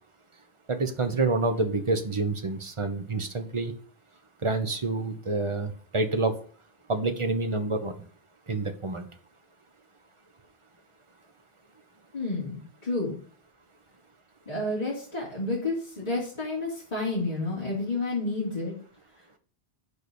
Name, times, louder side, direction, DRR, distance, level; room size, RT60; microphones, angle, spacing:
voice 1, 0.7-3.7 4.4-6.3 6.9-8.0 8.5-9.1, right 3 dB, 30° right, 7 dB, 1.0 m, -28 dB
voice 2, 12.1-13.2 14.5-18.7, left 2 dB, 40° left, -7 dB, 3.2 m, -30 dB
6.6 x 5.0 x 6.9 m, 0.44 s
omnidirectional pair, 1.1 m